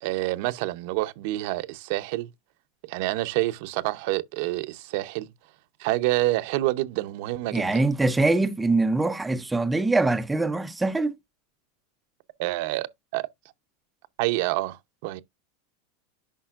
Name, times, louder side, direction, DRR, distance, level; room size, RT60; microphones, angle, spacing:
voice 1, 0.0-2.3 2.9-5.3 5.8-7.8 12.4-12.9 13.1-13.2 14.2-15.2, right 18 dB, 60° right, 0.7 m, -27 dB
voice 2, 7.5-11.1, right 2 dB, 5° right, 0.5 m, -23 dB
10.0 x 5.4 x 2.5 m
supercardioid pair, 145°, 0 cm